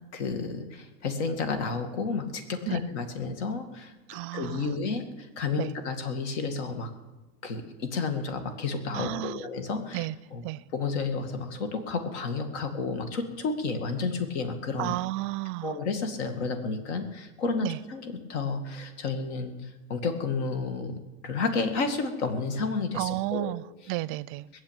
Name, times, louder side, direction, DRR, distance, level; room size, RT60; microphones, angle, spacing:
voice 1, 0.1-3.9 4.3-6.9 7.4-10.4 10.7-14.9 15.6-18.0 18.3-19.5 19.9-23.5 24.5-24.6, left 4 dB, 85° left, 2.3 m, -31 dB
voice 2, 4.1-4.7 5.6-5.7 8.9-9.4 9.9-10.1 10.4-10.6 14.8-15.8 17.6-17.8 22.9-24.4, right 19 dB, 40° right, 0.4 m, -32 dB
20.0 x 7.5 x 9.0 m
supercardioid pair, 160°, 33 cm